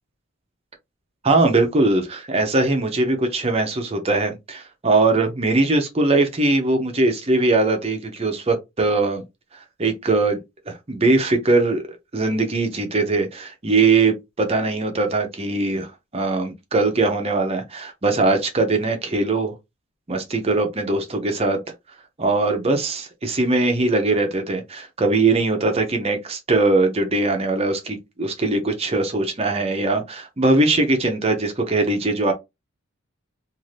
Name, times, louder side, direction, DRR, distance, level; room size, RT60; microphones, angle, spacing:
voice 1, 1.2-9.2 9.8-10.4 10.7-11.8 12.1-19.5 20.1-21.6 22.2-32.3, right 2 dB, 25° right, 0.6 m, -21 dB
2.6 x 2.5 x 3.2 m
head